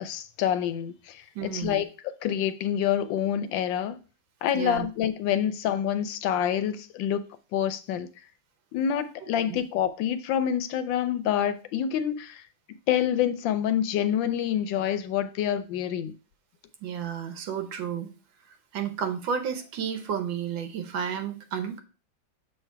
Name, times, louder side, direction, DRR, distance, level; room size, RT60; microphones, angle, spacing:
voice 1, 0.0-1.9 2.2-4.0 4.4-7.2 7.5-8.1 8.7-12.4 12.9-16.1, left 9 dB, 75° left, 1.2 m, -27 dB
voice 2, 1.3-1.8 4.5-4.9 9.5-9.6 16.8-18.1 18.7-21.8, right 7 dB, 75° right, 1.6 m, -32 dB
6.8 x 3.3 x 4.5 m
omnidirectional pair, 2.1 m